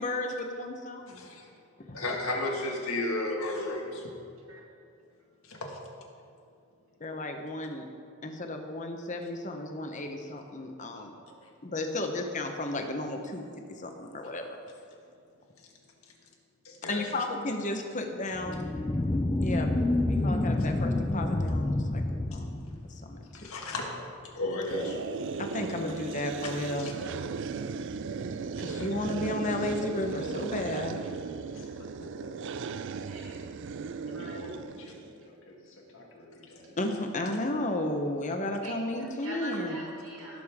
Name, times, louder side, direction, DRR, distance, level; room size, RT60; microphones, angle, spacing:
voice 1, 0.0-1.3 1.9-2.0 7.0-7.9 8.2-11.1 11.6-14.6 16.9-18.7 19.4-19.7 20.1-22.0 22.3-23.5 25.4-26.9 28.6-31.1 36.8-39.8, left 1 dB, 35° left, 4 dB, 1.0 m, -33 dB
voice 2, 1.1-1.5 1.9-4.1 5.4-5.8 16.6-17.0 22.3-22.4 23.3-23.9 24.2-25.1 25.8-25.9 26.8-26.9 28.0-28.3 28.7-28.8, left 2 dB, 85° left, -1 dB, 1.9 m, -33 dB
voice 3, 2.2-2.6 4.5-4.6 10.9-11.4 31.0-31.1 33.0-33.6 33.9-34.3 38.6-40.4, equal, 75° right, -4 dB, 2.8 m, -43 dB
sound 1, 18.3-23.3, left 2 dB, 15° left, 0.4 m, -28 dB
sound 2, 24.7-35.1, right 5 dB, 60° right, 0.4 m, -36 dB
voice 4, 31.5-32.6 34.1-36.8, left 1 dB, 60° left, -2 dB, 2.0 m, -48 dB
18.0 x 6.6 x 3.6 m, 2.4 s
head